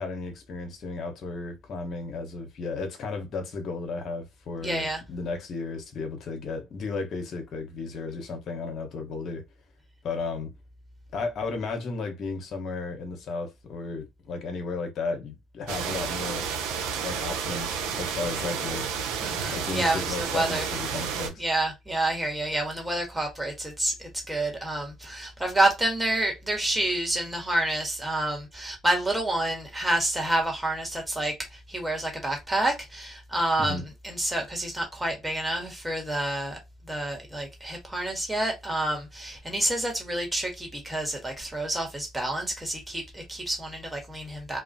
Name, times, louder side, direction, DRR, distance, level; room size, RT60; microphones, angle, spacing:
voice 1, 0.0-9.4 10.0-10.5 11.1-16.5 17.0-18.9 19.5-21.4 33.6-33.9, left 3 dB, 55° left, 1.0 m, -34 dB
voice 2, 4.6-5.0 19.2-20.7 21.4-33.8 34.0-36.6 36.9-44.6, right 1 dB, 10° right, 1.4 m, -28 dB
sound 1, 15.7-21.3, right 6 dB, 80° right, 0.6 m, -31 dB
2.3 x 2.3 x 2.6 m
supercardioid pair, 70°, 0 cm